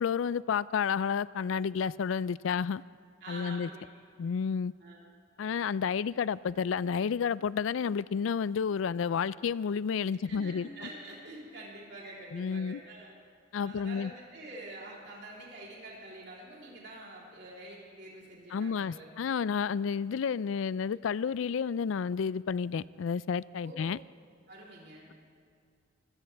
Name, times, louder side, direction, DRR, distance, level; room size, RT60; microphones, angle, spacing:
voice 1, 0.0-2.8 3.3-3.7 4.2-4.7 5.4-10.7 12.3-12.8 13.5-14.1 18.5-24.0, left 6 dB, 80° left, 0.4 m, -31 dB
voice 2, 3.2-3.8 4.8-5.0 10.2-13.1 13.6-19.1 23.6-23.8 24.5-25.1, right 1 dB, 60° right, 3.5 m, -46 dB
24.5 x 16.5 x 3.4 m
head